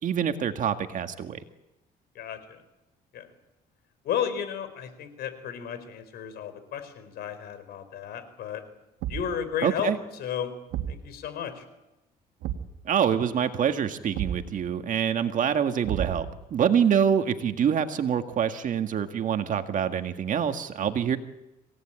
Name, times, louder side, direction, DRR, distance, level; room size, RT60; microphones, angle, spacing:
voice 1, 0.0-1.4 9.6-10.0 12.9-16.3 16.5-21.2, right 8 dB, 50° right, 7 dB, 2.0 m, -25 dB
voice 2, 2.1-2.6 3.1-3.3 4.0-8.6 9.1-9.9 10.2-10.5 10.9-11.6, left 8 dB, 70° left, 11 dB, 4.2 m, -33 dB
Thump thud, 9.0-9.4 10.7-11.1 12.4-12.8 14.1-14.5 15.8-16.4, right 10 dB, 85° right, 2.1 m, -32 dB
26.5 x 18.0 x 9.0 m, 0.97 s
cardioid pair, 110°, 17 cm